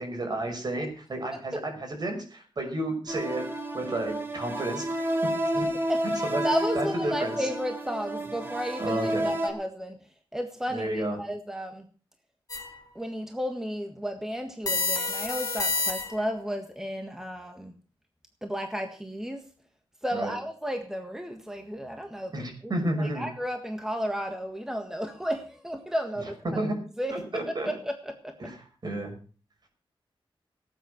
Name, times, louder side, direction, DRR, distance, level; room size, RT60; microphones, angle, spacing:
voice 1, 0.0-3.4 3.7-4.9 5.5-5.7 6.2-6.4 6.7-7.5 8.8-9.3 10.7-11.2 20.1-20.3 22.3-23.3 26.4-26.7 27.1-27.7 28.4-28.6 28.8-29.1, right 1 dB, 45° right, 4 dB, 6.0 m, -31 dB
sound 1, 3.1-9.5, equal, 25° right, 2.9 m, -30 dB
voice 2, 6.4-10.0 10.3-11.9 12.9-17.7 18.4-19.4 20.0-22.7 23.0-26.6 27.0-27.2 27.6-28.5, equal, 5° right, 5 dB, 1.7 m, -33 dB
sound 2, 12.5-12.9 14.7-16.3, left 3 dB, 40° left, 2.5 m, -29 dB
18.0 x 9.1 x 6.5 m, 0.39 s
wide cardioid pair, 125°, 10 cm